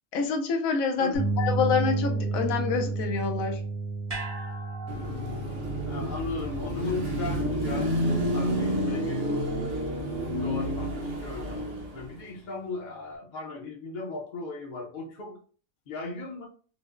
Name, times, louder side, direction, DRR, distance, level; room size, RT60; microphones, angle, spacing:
voice 1, 0.1-3.6, left 5 dB, 85° left, 5 dB, 1.0 m, -27 dB
voice 2, 1.0-1.3 5.9-7.9 8.3-9.3 10.4-15.4 15.9-16.5, left 3 dB, 45° left, -1 dB, 0.6 m, -37 dB
sound 1, 1.1-8.9, right 3 dB, 85° right, 1.8 m, -33 dB
sound 2, 4.1-8.4 8.7-8.8, right 2 dB, 40° right, 0.6 m, -43 dB
Car passing by / Traffic noise roadway noise / Engine, 4.9-12.2, equal, 65° right, 1.2 m, -30 dB
5.0 x 2.0 x 2.4 m, 0.42 s
omnidirectional pair, 1.4 m